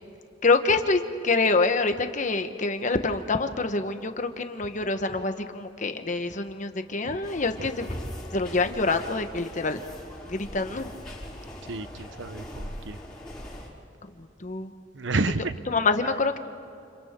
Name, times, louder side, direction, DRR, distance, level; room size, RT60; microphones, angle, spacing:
voice 1, 0.4-7.9 8.3-9.8 10.3-10.9 14.2-14.7 15.7-16.4, left 3 dB, 40° left, 7 dB, 1.1 m, -26 dB
sound 1, 7.2-13.7, equal, 5° left, 5.0 m, -40 dB
voice 2, 11.7-13.0 14.9-15.6, right 3 dB, 70° right, 12 dB, 0.8 m, -30 dB
30.0 x 29.5 x 3.7 m, 2.6 s
head